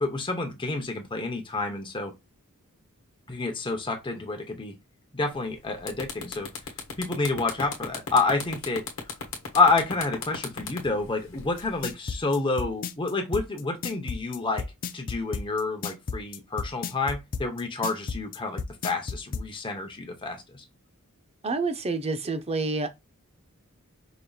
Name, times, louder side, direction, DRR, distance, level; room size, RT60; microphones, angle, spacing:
voice 1, 0.0-2.1 3.3-4.7 5.1-6.5 7.0-8.8 9.5-14.7 14.9-20.6, left 3 dB, 25° left, 0.9 m, -28 dB
sound 1, 5.4-5.5 5.8-11.9, left 5 dB, 70° left, 1.1 m, -36 dB
sound 2, 11.6-19.5, left 4 dB, 40° left, 0.4 m, -32 dB
voice 2, 21.4-22.9, right 3 dB, 30° right, 0.5 m, -28 dB
5.1 x 2.9 x 2.4 m
head